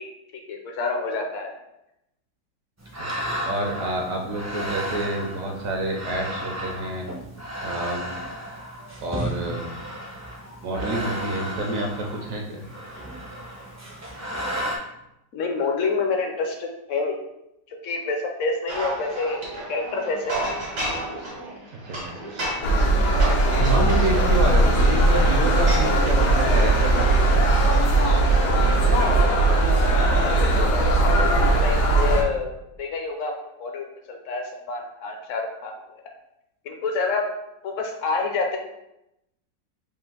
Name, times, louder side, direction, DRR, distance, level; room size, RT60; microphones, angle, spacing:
voice 1, 0.0-1.5 15.3-17.2 17.7-20.3 31.0-32.5 32.8-35.7 36.6-37.3 37.6-38.6, left 4 dB, 60° left, 3 dB, 0.9 m, -28 dB
sound 1, 2.8-14.8, equal, 20° right, 0.4 m, -33 dB
voice 2, 3.4-7.1 7.6-8.1 9.0-9.7 10.6-12.6 21.9-22.1 23.6-28.2, right 2 dB, 65° right, 2 dB, 0.9 m, -28 dB
sound 2, 18.7-28.7, right 1 dB, 85° right, 2.2 m, -33 dB
sound 3, 22.6-32.2, right 2 dB, 80° left, 1.4 m, -19 dB
5.1 x 2.5 x 3.8 m, 0.85 s
omnidirectional pair, 1.8 m